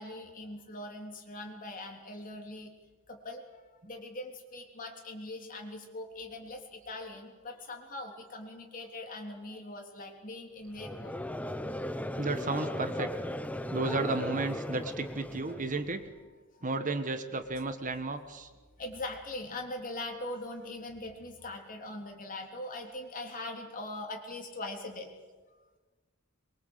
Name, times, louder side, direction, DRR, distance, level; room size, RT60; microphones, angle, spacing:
voice 1, 0.0-2.7 3.1-3.4 3.8-11.3 15.0-15.1 16.5-16.7 17.5-17.6 18.8-25.1, left 2 dB, 40° left, 2 dB, 3.6 m, -41 dB
Conversation / Crowd, 10.7-16.0, left 1 dB, 5° left, 0.8 m, -37 dB
voice 2, 12.2-13.1 13.7-16.0 16.6-18.5, right 3 dB, 40° right, 9 dB, 1.5 m, -33 dB
23.5 x 23.0 x 8.2 m, 1.3 s
head